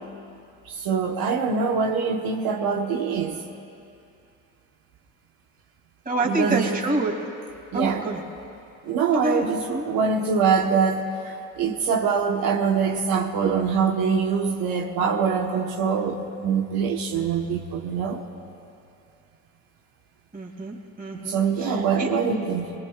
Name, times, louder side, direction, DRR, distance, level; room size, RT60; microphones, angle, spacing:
voice 1, 0.6-3.4 6.2-6.8 7.7-8.0 8.8-18.2 21.1-22.7, right 6 dB, 75° right, 0 dB, 1.3 m, -24 dB
voice 2, 6.0-7.2 7.7-8.2 9.1-9.8 20.3-22.1, right 2 dB, 25° right, 0 dB, 2.8 m, -27 dB
24.5 x 21.5 x 2.4 m, 2.6 s
cardioid pair, 95°, 37 cm